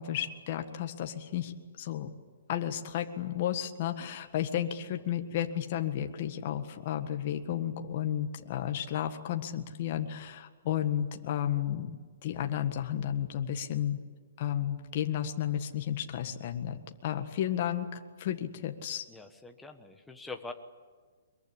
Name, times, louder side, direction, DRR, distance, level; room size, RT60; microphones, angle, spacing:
voice 1, 0.0-2.1 2.5-14.0 14.4-19.1, left 10 dB, 35° left, 6 dB, 1.7 m, -33 dB
voice 2, 19.1-20.5, left 3 dB, 5° left, 5 dB, 1.3 m, -44 dB
23.0 x 22.5 x 10.0 m, 1.5 s
hypercardioid pair, 170°, 0 cm